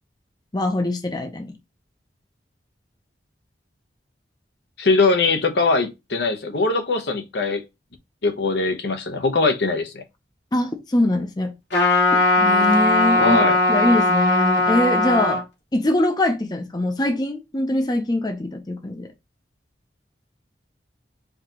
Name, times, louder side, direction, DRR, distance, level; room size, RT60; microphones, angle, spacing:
voice 1, 0.5-1.5 10.5-11.5 12.1-13.4 13.7-15.4 15.7-19.1, left 1 dB, 25° left, 0.6 m, -23 dB
voice 2, 4.8-7.6 8.2-10.0 13.2-13.6, left 3 dB, 75° left, 0.9 m, -21 dB
Trumpet, 11.7-15.4, left 2 dB, 90° left, 2.5 m, -18 dB
4.7 x 2.9 x 3.7 m
head